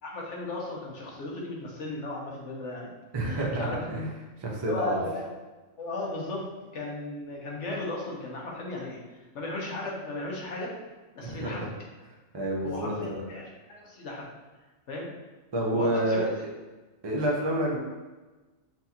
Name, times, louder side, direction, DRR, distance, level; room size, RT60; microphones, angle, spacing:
voice 1, 0.0-2.9 3.2-3.9 4.7-5.3 5.8-6.5 6.7-10.7 11.1-11.7 12.6-14.3 14.9-15.1 15.7-16.3, left 2 dB, 65° left, -3 dB, 1.2 m, -35 dB
voice 2, 3.1-4.1 4.4-5.0 11.2-11.7 12.3-13.2 15.5-16.3 17.0-17.8, right 1 dB, 30° right, -3 dB, 0.5 m, -28 dB
5.8 x 2.4 x 2.8 m, 1.2 s
omnidirectional pair, 1.4 m